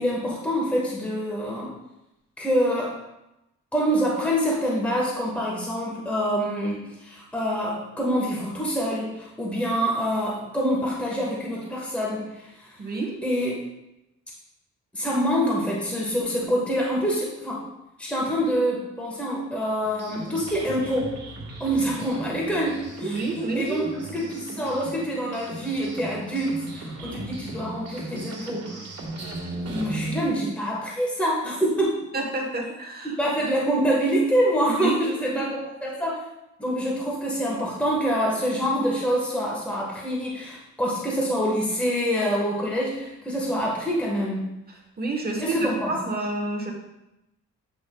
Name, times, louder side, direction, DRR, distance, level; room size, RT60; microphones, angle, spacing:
voice 1, 0.0-1.7 2.4-3.0 3.7-12.8 13.2-13.6 14.9-17.7 18.0-21.2 21.6-28.8 29.5-32.0 33.0-36.2 36.6-44.4 45.4-45.9, equal, 5° left, -4 dB, 1.3 m, -26 dB
voice 2, 12.8-13.1 23.0-23.9 32.1-33.1 34.8-35.1 35.4-35.5 45.0-46.7, right 2 dB, 30° right, 1 dB, 1.1 m, -29 dB
sound 1, 19.8-30.2, right 2 dB, 55° right, 1.5 m, -37 dB
8.3 x 5.2 x 2.3 m, 0.92 s
cardioid pair, 120°, 31 cm